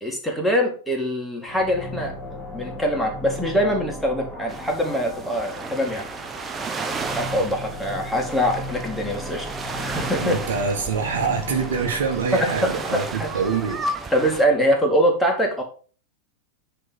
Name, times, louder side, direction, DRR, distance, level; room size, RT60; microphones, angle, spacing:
voice 1, 0.0-2.1 2.5-6.0 7.2-9.5 9.8-10.4 12.3-12.5 12.9-13.3 14.1-15.6, equal, ahead, 0 dB, 2.2 m, -23 dB
sound 1, 1.5-14.8, left 1 dB, 20° left, 2.5 m, -37 dB
sound 2, 4.5-14.5, right 3 dB, 20° right, 0.8 m, -33 dB
voice 2, 10.2-13.8, right 5 dB, 60° right, 4 dB, 1.4 m, -25 dB
9.4 x 3.4 x 5.8 m, 0.40 s
figure-of-eight pair, 90°, 0 cm